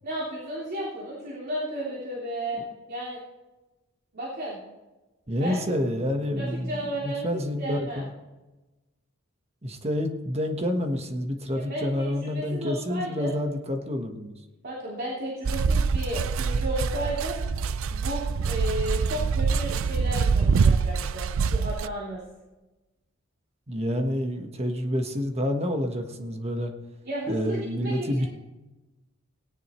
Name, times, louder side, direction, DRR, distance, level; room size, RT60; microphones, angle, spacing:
voice 1, 0.0-2.6 2.9-3.2 4.1-4.6 5.4-5.6 6.4-8.0 11.5-13.3 14.6-17.4 17.9-22.2 27.0-28.3, right 1 dB, 50° right, -6 dB, 3.1 m, -33 dB
voice 2, 5.3-8.1 9.6-14.3 23.7-26.7 27.3-28.3, left 1 dB, 30° right, 4 dB, 1.3 m, -28 dB
sound 1, 15.4-21.9, right 5 dB, 65° right, 0.4 m, -25 dB
18.5 x 10.5 x 3.1 m, 1.1 s
head